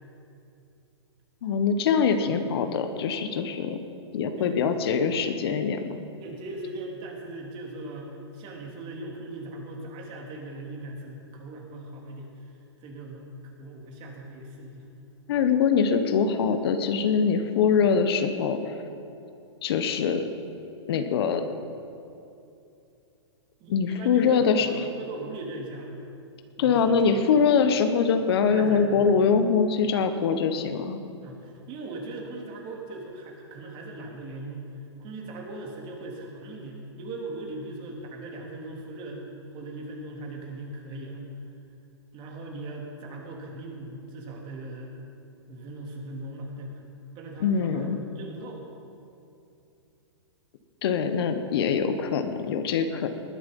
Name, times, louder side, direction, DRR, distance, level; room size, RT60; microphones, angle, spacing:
voice 1, 1.4-3.8 4.1-5.9 15.3-18.8 19.6-20.3 20.9-21.5 23.7-24.7 26.6-31.0 47.4-48.0 50.8-53.1, left 6 dB, 60° left, 8 dB, 1.3 m, -23 dB
voice 2, 6.2-12.5 12.8-13.3 13.6-14.9 23.6-25.9 26.6-27.4 28.5-29.1 31.2-41.2 42.1-44.9 45.5-46.8 47.1-48.6, right 2 dB, 35° right, 0 dB, 3.2 m, -39 dB
20.0 x 11.0 x 5.5 m, 2.7 s
hypercardioid pair, 130°, 15 cm